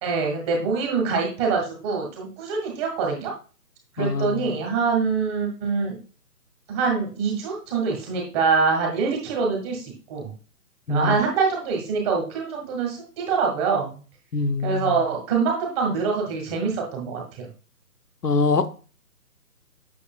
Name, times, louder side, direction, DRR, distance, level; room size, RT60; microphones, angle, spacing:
voice 1, 0.0-3.3 3.9-6.0 6.7-10.3 10.9-14.0 14.6-17.5, right 5 dB, 15° right, 0 dB, 1.6 m, -25 dB
voice 2, 4.0-4.5 10.9-11.2 14.3-15.0 18.2-18.7, left 3 dB, 80° left, 10 dB, 1.1 m, -24 dB
8.5 x 6.6 x 2.3 m, 0.36 s
figure-of-eight pair, 150°, 47 cm